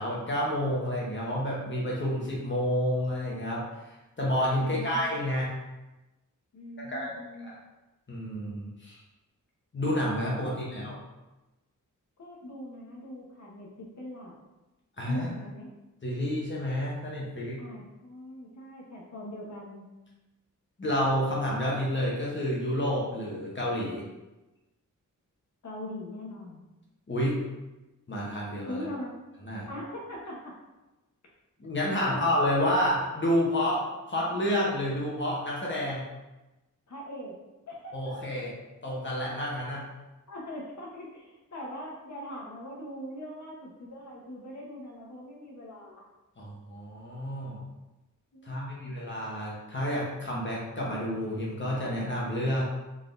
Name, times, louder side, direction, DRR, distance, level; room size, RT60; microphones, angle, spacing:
voice 1, 0.0-3.6 4.2-5.5 6.8-7.1 7.4-7.5 8.1-9.0 9.7-11.0 15.0-15.3 16.0-17.6 20.8-24.0 27.1-27.4 28.1-28.9 29.5-29.7 31.6-36.0 37.9-38.5 38.8-39.8 46.4-47.6 48.4-52.6, equal, 35° left, -5 dB, 1.0 m, -29 dB
voice 2, 4.6-5.2 6.5-7.5 10.4-11.0 12.2-14.3 15.1-15.7 17.6-19.8 25.6-26.6 28.7-29.1 29.7-30.4 31.9-32.3 36.9-37.3 37.7-38.4 40.3-46.0 48.3-49.0, left 1 dB, 60° left, -3 dB, 1.1 m, -41 dB
4.0 x 3.6 x 2.6 m, 1.0 s
wide cardioid pair, 130°, 33 cm